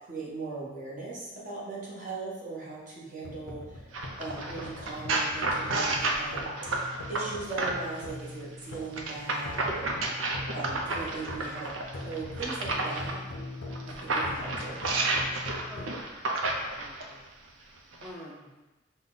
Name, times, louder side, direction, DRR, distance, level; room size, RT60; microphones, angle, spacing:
voice 1, 0.0-10.2 10.5-13.2 13.9-14.8, right 3 dB, 40° right, -6 dB, 1.1 m, -39 dB
sound 1, 3.2-16.0, left 2 dB, 85° left, 0.6 m, -42 dB
sound 2, 3.9-8.0 8.9-13.1 13.7-17.1 17.9-18.1, right 2 dB, 90° right, 0.6 m, -31 dB
voice 2, 15.7-17.2 18.0-18.5, equal, ahead, -7 dB, 0.4 m, -47 dB
5.3 x 2.2 x 3.9 m, 1.1 s
head